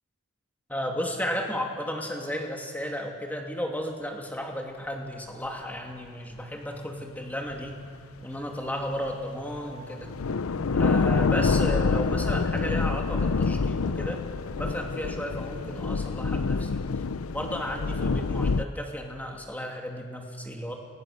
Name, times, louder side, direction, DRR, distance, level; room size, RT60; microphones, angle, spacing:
voice 1, 0.7-7.8 8.2-10.1 10.7-14.2 14.5-16.9 17.3-20.7, equal, 10° left, 1 dB, 2.7 m, -34 dB
sound 1, 7.5-7.9 8.4-8.5 9.6-9.7 10.0-18.6, left 4 dB, 75° left, 0.6 m, -26 dB
29.0 x 22.5 x 6.7 m, 2.1 s
head